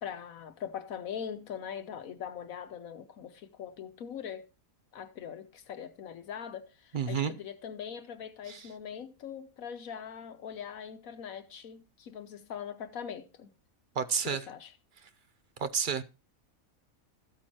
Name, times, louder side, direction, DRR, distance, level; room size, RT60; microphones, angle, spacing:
voice 1, 0.0-4.4 4.9-13.5 14.2-14.7, left 8 dB, 75° left, 1.3 m, -41 dB
voice 2, 6.9-7.3 8.5-8.7 14.0-14.5 15.6-16.0, right 6 dB, 50° right, 0.6 m, -30 dB
13.5 x 8.6 x 2.9 m
omnidirectional pair, 1.5 m